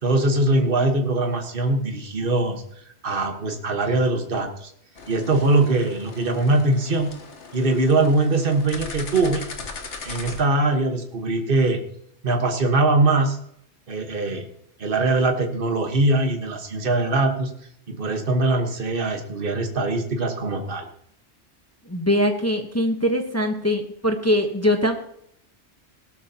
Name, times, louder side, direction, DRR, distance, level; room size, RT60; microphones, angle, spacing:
voice 1, 0.0-2.6 3.0-4.7 5.1-7.1 7.5-9.4 10.0-11.8 12.2-13.4 13.9-14.4 14.8-17.5 17.9-20.9, right 2 dB, 50° right, 4 dB, 1.6 m, -22 dB
sound 1, 5.0-10.4, left 4 dB, 85° left, 1.6 m, -38 dB
voice 2, 21.9-24.9, left 1 dB, 15° left, 4 dB, 1.0 m, -22 dB
18.0 x 12.5 x 2.9 m, 0.70 s
omnidirectional pair, 1.2 m